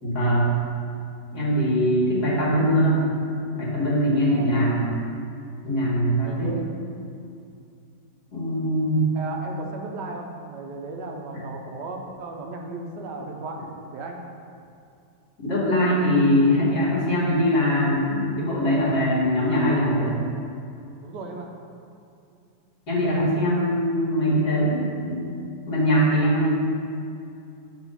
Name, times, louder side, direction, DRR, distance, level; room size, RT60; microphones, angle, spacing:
voice 1, 0.0-0.5 1.3-3.1 3.5-4.9 5.6-6.6 8.3-9.0 11.3-11.4 15.4-20.2 22.9-25.3 25.7-26.5, equal, 65° left, -6 dB, 2.4 m, -22 dB
voice 2, 4.3-4.7 6.2-6.6 9.1-13.7 13.9-14.2 21.0-21.5, right 3 dB, 80° right, 2 dB, 1.4 m, -36 dB
8.1 x 4.4 x 5.6 m, 2.5 s
omnidirectional pair, 1.9 m